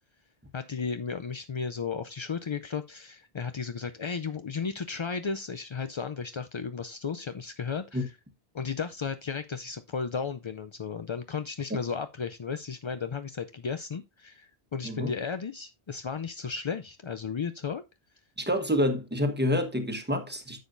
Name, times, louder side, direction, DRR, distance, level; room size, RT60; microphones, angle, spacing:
voice 1, 0.5-8.2 8.5-17.8, left 5 dB, 50° left, 0.3 m, -34 dB
voice 2, 18.4-20.6, left 1 dB, 10° right, 1.2 m, -28 dB
10.5 x 7.2 x 2.5 m
omnidirectional pair, 1.1 m